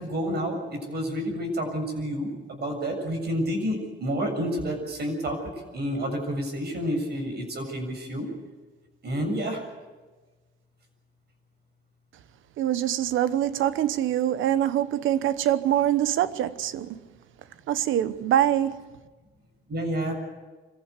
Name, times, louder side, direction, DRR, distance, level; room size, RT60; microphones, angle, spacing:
voice 1, 0.0-5.4 5.7-8.3 9.0-9.6 19.7-20.2, equal, 55° right, 7.1 m, -29 dB
voice 2, 12.6-17.0 17.7-18.8, right 11 dB, 80° right, 1.0 m, -24 dB
25.0 x 15.5 x 8.2 m
cardioid pair, 90°, 20 cm